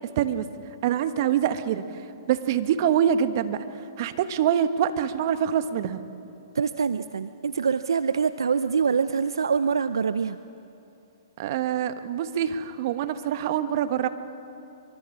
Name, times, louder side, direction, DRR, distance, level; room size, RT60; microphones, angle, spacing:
voice 1, 0.2-0.5 0.8-1.8 2.3-3.6 4.0-6.0 11.4-14.1, right 9 dB, 50° right, 10 dB, 1.4 m, -25 dB
voice 2, 6.5-10.4, right 6 dB, 80° right, 13 dB, 0.6 m, -25 dB
25.0 x 23.5 x 7.3 m, 2.8 s
hypercardioid pair, 125°, 2 cm